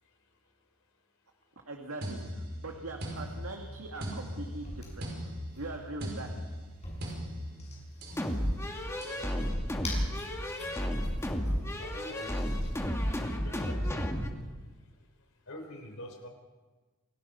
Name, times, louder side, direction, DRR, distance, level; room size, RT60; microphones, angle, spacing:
voice 1, 1.7-6.4, right 2 dB, 70° right, 2 dB, 2.0 m, -42 dB
sound 1, 2.0-8.3 9.0-9.3, equal, 50° right, 5.3 m, -40 dB
sound 2, 3.1-11.6, left 2 dB, 30° left, 6.8 m, -47 dB
sound 3, 8.2-14.3, equal, 15° left, 2.0 m, -32 dB
voice 2, 11.3-14.7 15.5-16.3, left 1 dB, 65° left, 4 dB, 3.8 m, -46 dB
29.0 x 19.0 x 5.6 m, 1.3 s
head